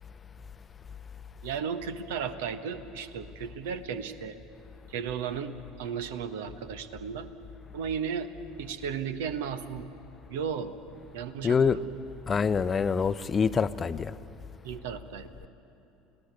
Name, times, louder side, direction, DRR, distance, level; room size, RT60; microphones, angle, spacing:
voice 1, 1.4-4.4 4.9-7.3 7.7-8.3 8.6-9.9 10.3-10.7 11.1-11.8 14.6-15.5, right 7 dB, 65° right, 1.2 m, -35 dB
voice 2, 11.4-11.8 12.3-14.1, left 6 dB, 30° left, 0.7 m, -25 dB
29.5 x 17.0 x 8.1 m
figure-of-eight pair, 70°, 0 cm